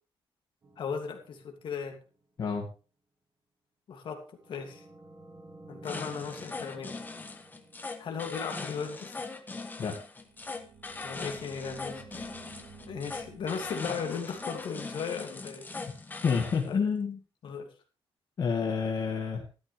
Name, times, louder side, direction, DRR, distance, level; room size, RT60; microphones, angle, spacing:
sound 1, 0.6-2.1 4.3-8.8 10.2-15.2, right 3 dB, 30° right, 2.2 m, -53 dB
voice 1, 0.8-2.0 3.9-4.8 5.7-7.0 8.0-9.2 11.0-12.3 12.9-15.7 16.6-16.8 17.4-17.7, left 6 dB, 60° left, 3 dB, 2.8 m, -37 dB
sound 2, 5.8-16.7, left 3 dB, 20° left, 1.4 m, -40 dB
voice 2, 16.2-17.2 18.4-19.5, left 5 dB, 45° left, -1 dB, 2.2 m, -28 dB
14.0 x 12.5 x 3.5 m, 0.33 s
cardioid pair, 155°, 10 cm